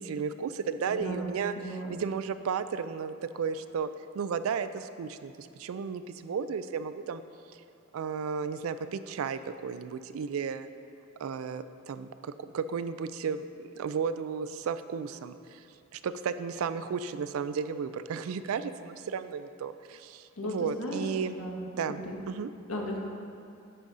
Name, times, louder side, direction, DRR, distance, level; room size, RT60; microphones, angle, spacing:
voice 1, 0.0-3.9 4.1-7.2 7.5-7.6 7.9-10.7 11.2-15.6 15.9-21.3 21.8-22.0 22.3-22.5, right 6 dB, 80° right, 12 dB, 0.3 m, -34 dB
voice 2, 0.9-2.0 20.4-22.2 22.7-23.0, equal, 90° left, -1 dB, 1.2 m, -36 dB
9.9 x 4.0 x 4.9 m, 2.6 s
head